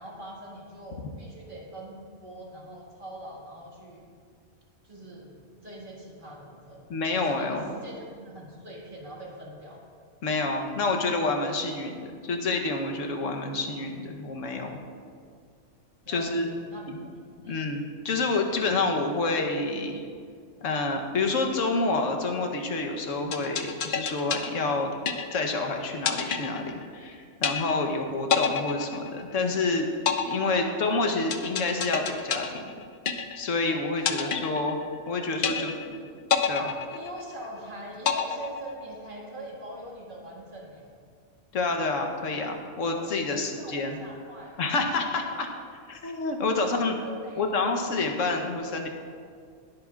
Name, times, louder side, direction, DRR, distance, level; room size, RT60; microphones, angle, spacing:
voice 1, 0.0-4.1 4.8-6.8 7.2-9.8 16.1-17.7 30.3-30.8 34.0-34.5 35.4-35.7 36.9-40.9 43.0-44.6 45.1-45.4 46.6-47.4 48.6-48.7, right 1 dB, 40° right, -3 dB, 2.0 m, -43 dB
voice 2, 6.9-7.6 10.2-14.8 16.1-16.5 16.9-17.0 17.5-20.0 20.6-24.9 25.3-29.9 30.2-32.7 33.4-34.8 35.1-35.7 36.5-36.7 41.5-44.0 44.6-45.5 45.9-47.0 47.4-48.9, left 3 dB, 80° left, 4 dB, 1.4 m, -28 dB
sound 1, 23.3-25.6 26.1-27.1 27.4-28.0 28.3-29.6 30.1-33.6 34.1-35.1 35.4-36.0 36.3-37.6 38.1-39.1, left 7 dB, 50° left, 0.7 m, -28 dB
20.5 x 8.4 x 2.4 m, 2.1 s
omnidirectional pair, 1.3 m